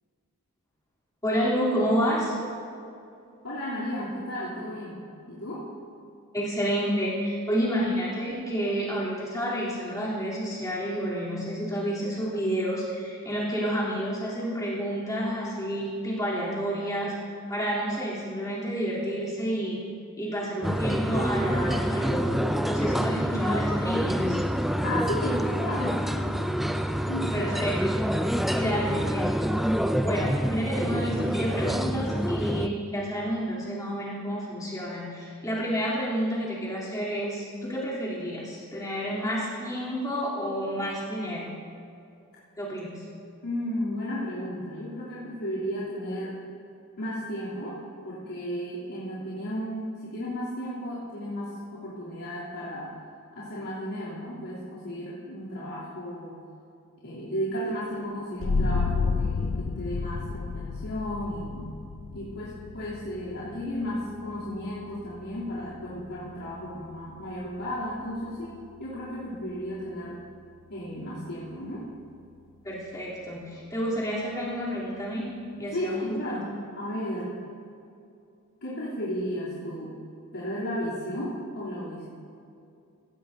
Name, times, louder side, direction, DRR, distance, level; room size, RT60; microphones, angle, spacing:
voice 1, 1.2-2.3 6.3-17.1 17.5-19.8 20.2-24.4 27.3-27.8 28.5-29.7 30.0-41.5 42.6-43.1 72.6-76.5, equal, 15° left, -7 dB, 3.4 m, -30 dB
voice 2, 3.4-5.0 5.3-5.7 24.8-26.6 27.0-27.6 42.8-42.9 43.4-46.3 47.0-52.9 53.3-56.4 57.0-61.7 62.1-68.5 68.8-70.2 70.7-71.8 75.7-76.5 76.7-77.3 78.6-79.9 80.3-82.1, equal, 85° left, -12 dB, 3.3 m, -34 dB
sound 1, 20.6-32.7, equal, ahead, 0.4 m, -27 dB
sound 2, 58.4-69.7, left 4 dB, 60° left, 0.5 m, -33 dB
16.0 x 16.0 x 2.8 m, 2.5 s
head